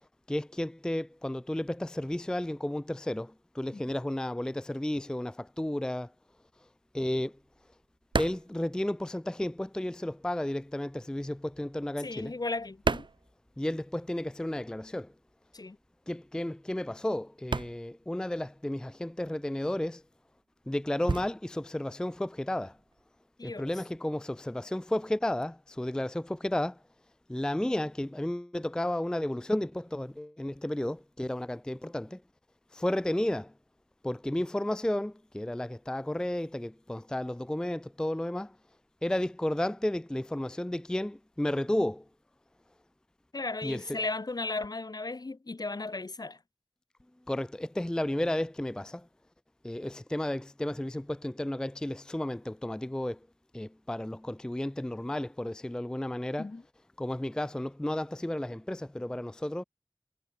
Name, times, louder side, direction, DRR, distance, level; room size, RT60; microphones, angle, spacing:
voice 1, 0.3-6.1 6.9-7.3 8.2-12.3 13.6-15.1 16.1-20.0 20.7-22.8 23.4-26.8 27.3-32.2 32.7-33.5 34.0-38.6 39.0-42.0 43.6-43.8 47.3-49.1 49.6-53.2 53.5-56.5 57.0-59.6, left 1 dB, 10° left, 0.3 m, -32 dB
sound 1, 6.3-9.7 9.9-14.1 14.3-23.1, right 4 dB, 60° right, 0.5 m, -37 dB
voice 2, 12.0-13.1 15.5-15.8 23.4-23.7 43.3-46.4 56.4-56.6, left 3 dB, 45° left, 0.7 m, -35 dB
wide cardioid pair, 40°, 9 cm